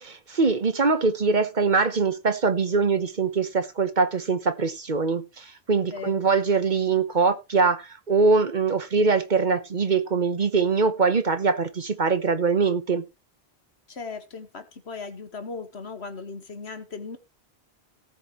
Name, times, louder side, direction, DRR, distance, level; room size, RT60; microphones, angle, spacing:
voice 1, 0.0-13.0, right 4 dB, 45° right, 1.2 m, -23 dB
voice 2, 5.8-6.2 13.9-17.2, left 4 dB, 80° left, 1.9 m, -37 dB
18.5 x 6.5 x 3.1 m
omnidirectional pair, 1.1 m